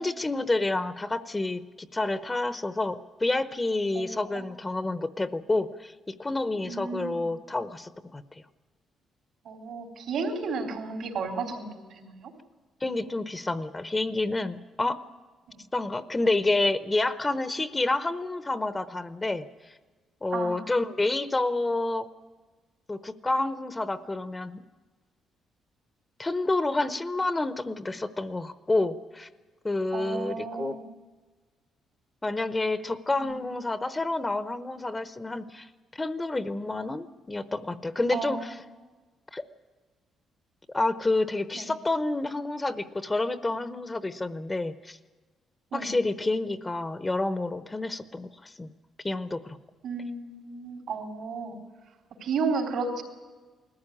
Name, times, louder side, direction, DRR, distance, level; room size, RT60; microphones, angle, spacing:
voice 1, 0.0-8.2 12.8-15.0 15.7-19.7 20.2-22.1 22.9-24.6 26.2-29.3 29.6-30.8 32.2-38.6 39.3-39.4 40.7-45.0 45.7-48.7 49.0-49.6, left 2 dB, 20° left, 13 dB, 0.8 m, -29 dB
voice 2, 4.0-4.5 6.6-7.3 9.4-12.3 15.5-15.6 20.3-20.7 29.9-30.8 33.2-33.3 38.1-38.5 41.5-41.7 45.7-45.9 49.8-51.5 52.2-53.0, right 4 dB, 75° right, 3 dB, 3.6 m, -33 dB
20.0 x 14.5 x 9.9 m, 1.4 s
cardioid pair, 90°, 0 cm